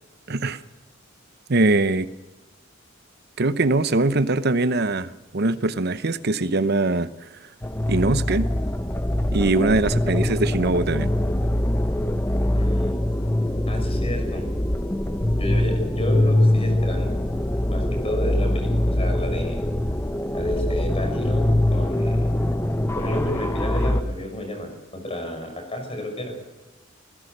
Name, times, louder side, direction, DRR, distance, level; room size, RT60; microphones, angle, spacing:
voice 1, 0.3-0.6 1.5-2.1 3.4-7.1 7.9-8.5 9.3-11.1, right 2 dB, 55° right, 13 dB, 0.9 m, -22 dB
sound 1, 7.6-24.0, left 1 dB, 15° left, 0.8 m, -23 dB
voice 2, 12.5-13.0 13.7-14.4 15.3-17.2 17.7-19.6 20.3-22.4 22.9-26.4, left 1 dB, 30° left, 4 dB, 6.1 m, -31 dB
26.5 x 16.0 x 6.8 m, 1.1 s
head